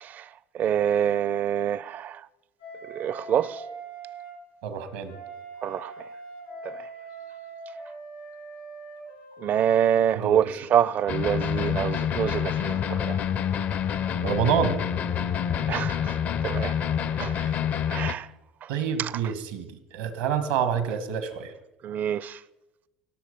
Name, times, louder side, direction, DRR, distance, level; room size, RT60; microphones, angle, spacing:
voice 1, 0.5-2.2 2.9-3.6 5.6-5.9 6.7-6.8 9.4-13.2 15.7-16.2 16.4-16.8 17.2-17.3 17.9-18.3 19.0-19.1 21.8-22.4, right 9 dB, 50° right, 0.5 m, -26 dB
Wind instrument woodwind instrument, 2.6-4.4 5.1-9.8 10.5-15.7, right 2 dB, 85° left, 4.7 m, -44 dB
voice 2, 4.6-5.1 10.1-10.4 14.2-14.8 17.3-17.5 18.7-21.5, right 7 dB, 85° right, 1.4 m, -27 dB
sound 1, 11.1-18.1, left 8 dB, 55° left, 0.6 m, -27 dB
18.0 x 6.4 x 5.2 m
hypercardioid pair, 70°, 4 cm